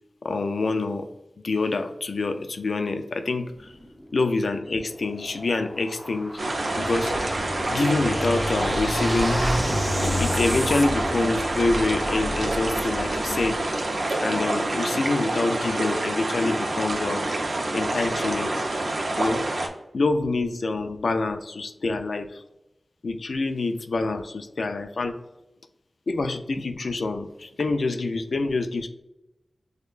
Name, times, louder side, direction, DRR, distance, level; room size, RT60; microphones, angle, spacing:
voice 1, 0.2-1.1 1.4-3.7 4.1-6.4 6.8-7.1 7.7-9.4 10.2-13.6 14.2-17.3 17.7-18.6 19.2-19.5 19.9-22.4 23.0-25.2 26.1-28.9, left 3 dB, 85° left, 8 dB, 0.3 m, -26 dB
sound 1, 3.4-10.9, equal, ahead, 0.7 m, -38 dB
sound 2, 6.4-19.7, right 2 dB, 70° right, 0.6 m, -27 dB
Motorcycle / Engine, 6.6-13.8, equal, 25° right, 1.1 m, -30 dB
6.4 x 2.2 x 2.4 m, 0.95 s
wide cardioid pair, 70°, 0 cm